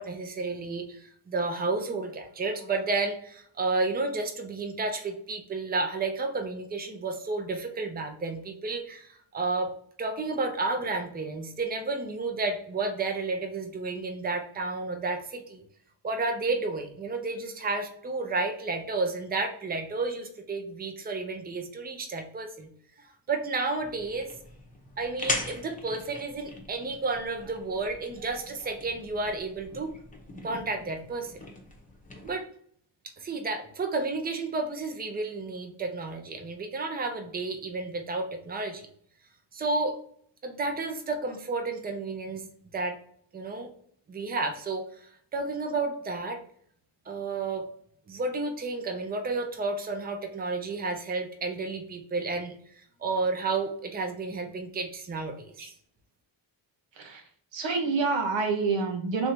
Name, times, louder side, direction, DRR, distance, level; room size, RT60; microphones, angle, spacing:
voice 1, 0.0-9.7 10.0-15.6 16.0-22.7 23.3-24.3 25.0-29.9 30.4-31.3 32.2-32.5 33.2-38.9 39.5-40.0 40.4-42.5 42.7-43.0 43.3-43.7 44.1-44.8 45.3-46.4 47.1-47.6 48.1-52.5 53.0-55.7, right 3 dB, 20° right, 4 dB, 0.6 m, -31 dB
sound 1, 23.8-32.3, left 2 dB, 20° left, 0.8 m, -40 dB
voice 2, 57.5-59.3, right 4 dB, 85° right, 5 dB, 0.8 m, -27 dB
3.3 x 2.6 x 4.4 m, 0.62 s
cardioid pair, 110°, 44 cm